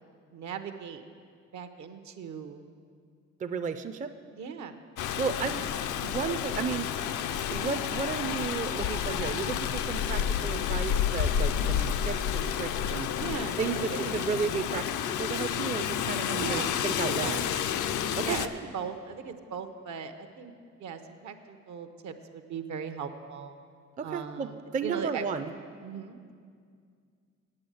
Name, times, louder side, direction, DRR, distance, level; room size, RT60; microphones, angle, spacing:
voice 1, 0.3-1.0 1.5-2.6 4.3-4.8 5.4-5.7 13.2-14.2 16.4-16.7 17.2-17.4 18.2-20.5 20.8-23.6 24.0-25.3 25.8-26.2, right 6 dB, 70° right, 8 dB, 0.8 m, -38 dB
voice 2, 3.4-4.1 5.2-5.6 6.0-6.9 7.5-13.1 13.6-14.9 15.2-17.4 18.2-18.4 24.0-25.5, right 6 dB, 25° right, 9 dB, 0.4 m, -33 dB
Rain, 5.0-18.5, left 9 dB, 80° left, 0.5 m, -30 dB
8.7 x 8.3 x 7.7 m, 2.2 s
cardioid pair, 95°, 30 cm